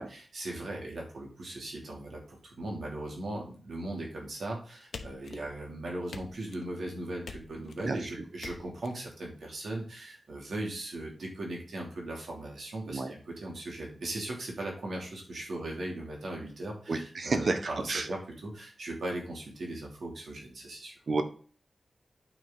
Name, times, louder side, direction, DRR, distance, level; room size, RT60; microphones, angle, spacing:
voice 1, 0.0-21.0, right 1 dB, 85° right, -1 dB, 2.9 m, -38 dB
sound 1, 4.9-5.7 6.1-6.7 7.2-7.9 8.4-8.9, left 4 dB, 85° left, 1.0 m, -45 dB
voice 2, 7.8-8.2 12.9-13.1 16.9-18.1 21.1-21.2, right 3 dB, 60° right, 8 dB, 1.2 m, -31 dB
9.3 x 5.1 x 4.0 m, 0.42 s
wide cardioid pair, 125°, 0 cm